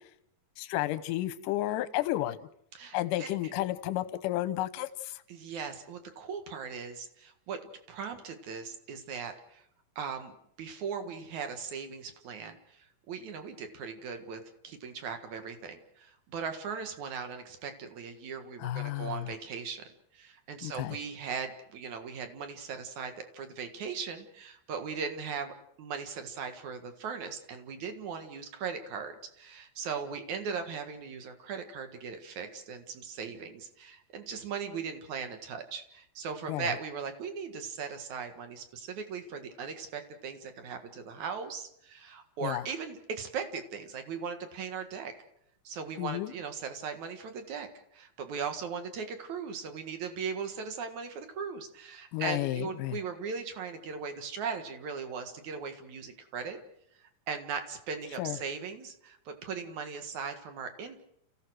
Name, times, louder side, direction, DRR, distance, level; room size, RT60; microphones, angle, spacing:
voice 1, 0.6-2.5 2.9-5.2 18.6-19.3 20.6-21.0 36.5-36.7 42.4-42.6 46.0-46.3 52.1-53.0 58.2-58.4, left 14 dB, 70° left, 12 dB, 2.2 m, -32 dB
voice 2, 2.7-3.3 5.3-7.6 7.9-9.6 10.0-10.3 10.6-12.8 13.1-19.8 20.1-45.1 45.6-56.6 57.3-61.0, right 6 dB, 55° right, 7 dB, 2.7 m, -38 dB
30.0 x 16.0 x 6.4 m, 0.74 s
omnidirectional pair, 4.6 m